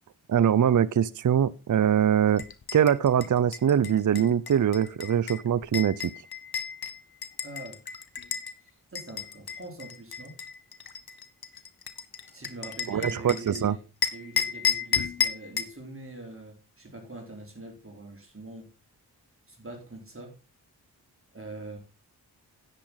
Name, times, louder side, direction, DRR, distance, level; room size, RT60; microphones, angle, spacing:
voice 1, 0.3-2.4 2.7-5.9 12.9-13.8, right 9 dB, 50° right, 0.6 m, -23 dB
sound 1, 2.4-8.5 8.9-13.6 14.0-15.8, left 7 dB, 65° left, 1.2 m, -32 dB
voice 2, 7.4-7.8 8.6-10.4 12.3-13.9 14.1-18.7 19.5-20.4 21.3-21.8, right 2 dB, 35° right, 3.8 m, -43 dB
10.0 x 9.0 x 3.9 m
cardioid pair, 45°, 40 cm